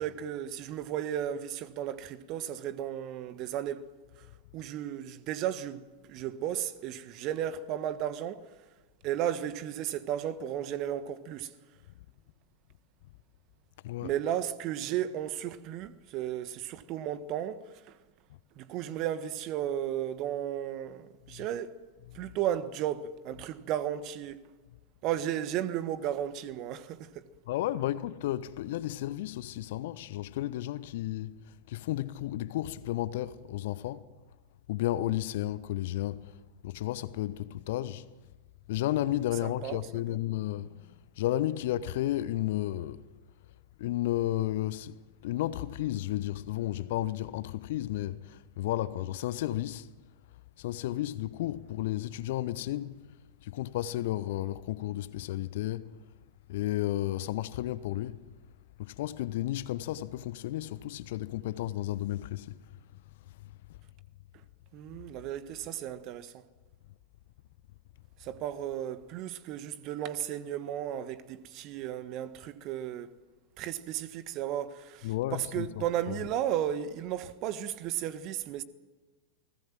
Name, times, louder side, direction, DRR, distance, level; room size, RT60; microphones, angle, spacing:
voice 1, 0.0-3.9 4.5-8.5 9.0-11.5 14.0-18.0 18.6-21.7 22.1-24.5 25.0-27.3 39.4-40.2 64.7-66.4 68.2-73.1 73.6-78.6, right 11 dB, 40° right, 1.5 m, -34 dB
voice 2, 13.8-14.2 21.3-21.5 22.0-22.2 27.5-31.4 31.7-34.0 34.7-36.3 36.6-38.1 38.7-40.7 41.2-43.0 43.8-45.0 45.2-49.9 50.6-52.9 53.4-55.9 56.5-58.2 58.8-62.6 75.0-76.3, left 14 dB, 55° left, 1.0 m, -33 dB
28.5 x 20.0 x 7.6 m
figure-of-eight pair, 90°, 0 cm